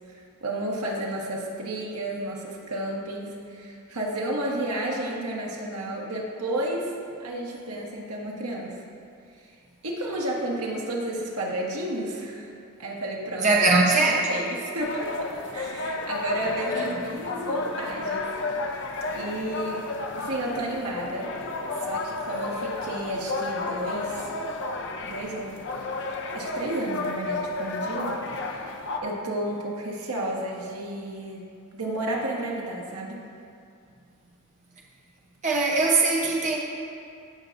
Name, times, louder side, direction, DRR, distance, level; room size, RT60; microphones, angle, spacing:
voice 1, 0.1-6.9 7.2-8.8 9.3-9.5 9.8-12.5 12.8-13.6 13.9-18.3 19.1-19.8 20.2-21.3 21.8-24.3 25.0-25.6 26.3-28.7 29.0-31.4 31.7-33.2, right 1 dB, 85° right, -3 dB, 1.5 m, -32 dB
voice 2, 13.4-14.1 35.4-36.6, right 3 dB, 35° right, -3 dB, 0.8 m, -20 dB
sound 1, 14.8-29.0, left 2 dB, 55° left, 0.6 m, -32 dB
16.5 x 6.5 x 2.6 m, 2.5 s
head